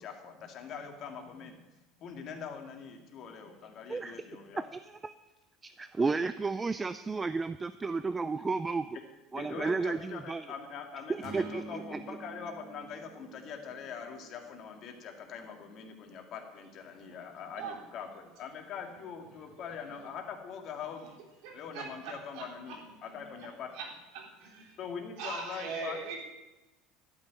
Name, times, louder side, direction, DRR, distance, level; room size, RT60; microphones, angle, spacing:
voice 1, 0.0-1.7 2.0-4.7 9.3-21.2 21.5-23.7 24.8-26.0, left 6 dB, 45° left, 3 dB, 2.1 m, -43 dB
voice 2, 4.7-5.1 5.6-9.0 9.3-10.5 11.1-12.0, right 4 dB, 15° right, 12 dB, 0.4 m, -33 dB
sound 1, 11.2-15.5, right 4 dB, 45° right, 2.6 m, -48 dB
voice 3, 21.4-22.8 23.1-23.2 23.7-23.9 24.1-24.7 25.2-26.2, right 4 dB, 70° right, 1 dB, 3.4 m, -40 dB
12.0 x 6.1 x 9.2 m, 1.1 s
supercardioid pair, 125°, 0 cm